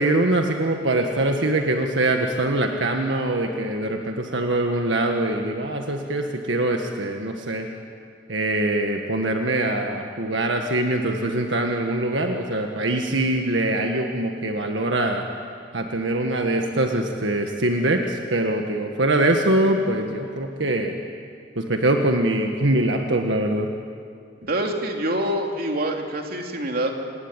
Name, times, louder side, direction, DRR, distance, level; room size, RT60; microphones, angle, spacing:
voice 1, 0.0-7.7 8.3-15.2 15.7-20.9 21.6-23.7, right 1 dB, 80° right, 3 dB, 1.7 m, -23 dB
voice 2, 24.5-26.9, right 1 dB, 55° right, 2 dB, 3.0 m, -25 dB
28.0 x 20.5 x 9.0 m, 2.3 s
head